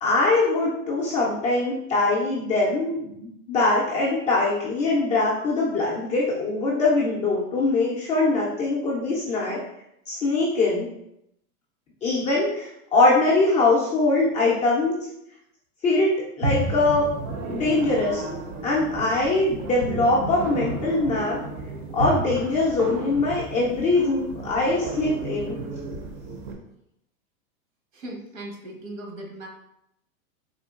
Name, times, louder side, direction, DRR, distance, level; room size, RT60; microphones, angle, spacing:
voice 1, 0.0-9.6 10.1-10.9 12.0-14.9 15.8-17.1 17.5-18.2 18.6-21.4 21.9-25.6, left 2 dB, 20° left, -6 dB, 0.3 m, -22 dB
sound 1, 16.4-26.5, right 2 dB, 40° right, 0.6 m, -32 dB
voice 2, 27.9-29.5, right 1 dB, 65° right, 0 dB, 1.1 m, -38 dB
3.7 x 2.4 x 2.3 m, 0.80 s
hypercardioid pair, 115°, 43 cm